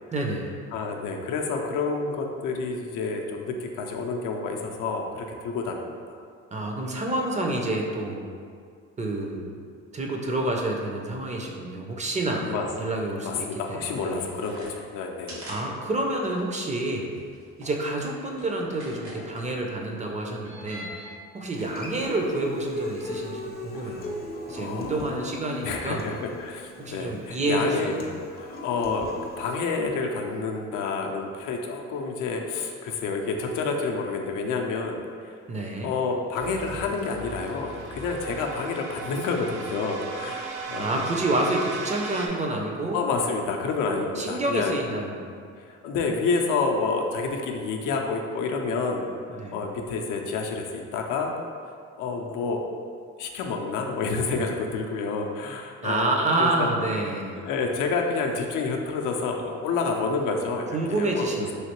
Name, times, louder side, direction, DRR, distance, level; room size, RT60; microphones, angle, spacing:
voice 1, 0.1-0.6 6.5-8.3 9.0-9.6 9.9-12.5 12.8-14.2 15.5-17.2 17.6-20.9 21.3-24.2 24.5-26.0 26.8-28.1 35.5-35.9 40.8-43.0 44.2-45.2 49.3-49.6 55.8-57.4 60.7-61.6, right 2 dB, 25° right, 0 dB, 0.4 m, -28 dB
voice 2, 0.7-6.2 12.4-12.7 13.2-15.6 23.7-23.9 24.5-25.1 25.6-27.9 28.3-35.4 35.8-41.1 42.9-44.8 45.7-51.4 52.0-52.6 53.2-56.7 57.3-61.3, left 4 dB, 85° left, 2 dB, 0.5 m, -29 dB
sound 1, 13.9-14.7 15.3-15.6 15.9-16.0 16.2-19.4 20.3-21.1 21.4-26.1, equal, 70° right, 1.1 m, -47 dB
Human voice / Acoustic guitar, 21.5-29.6, left 2 dB, 35° left, 0.4 m, -38 dB
sound 2, 36.4-42.3, right 4 dB, 90° right, 0.5 m, -37 dB
3.1 x 2.8 x 2.9 m, 2.2 s
cardioid pair, 90°, 30 cm